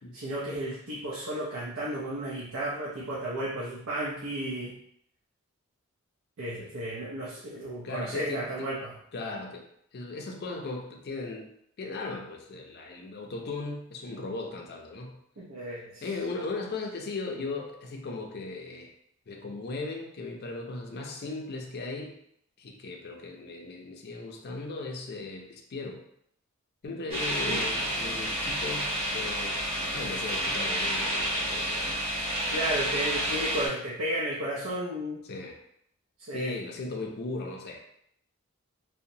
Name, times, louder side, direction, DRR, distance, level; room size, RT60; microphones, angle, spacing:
voice 1, 0.1-4.8 6.4-8.9 15.4-16.0 27.5-27.6 32.5-35.2 36.3-36.6, right 1 dB, 90° right, -7 dB, 0.6 m, -33 dB
voice 2, 7.8-8.7 9.1-9.6 9.9-11.5 11.8-15.2 16.0-18.9 19.3-22.1 22.6-26.0 26.8-29.6 29.9-31.9 35.3-35.6 36.3-37.8, left 3 dB, 50° left, 1 dB, 0.4 m, -37 dB
sound 1, 27.1-33.7, equal, 30° right, 0.9 m, -30 dB
2.8 x 2.1 x 2.6 m, 0.72 s
head